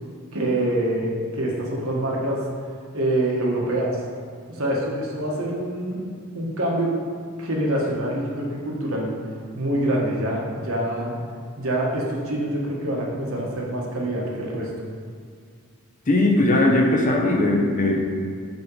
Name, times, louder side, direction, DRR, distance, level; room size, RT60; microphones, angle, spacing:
voice 1, 0.3-2.4 2.9-4.0 4.5-7.0 7.4-9.1 9.5-11.2 11.6-14.7, right 1 dB, 65° right, -3 dB, 1.3 m, -25 dB
voice 2, 16.1-18.0, left 1 dB, 35° left, 0 dB, 0.8 m, -19 dB
5.3 x 4.4 x 5.4 m, 2.2 s
head